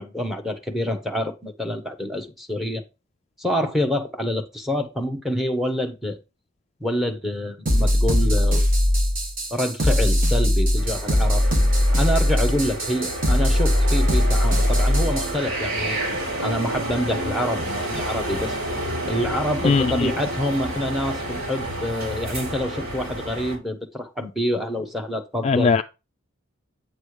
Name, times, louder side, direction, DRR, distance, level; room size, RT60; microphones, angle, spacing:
voice 1, 0.0-2.8 3.4-6.2 6.8-8.6 9.5-11.5 11.9-16.0 16.4-18.6 19.1-25.8, equal, ahead, 1.1 m, -27 dB
sound 1, 7.7-15.4, left 1 dB, 40° right, 1.6 m, -20 dB
sound 2, 10.8-23.6, right 1 dB, 90° right, 3.3 m, -30 dB
voice 2, 19.6-20.1 25.4-25.8, left 4 dB, 30° left, 0.3 m, -19 dB
8.6 x 3.3 x 6.5 m
head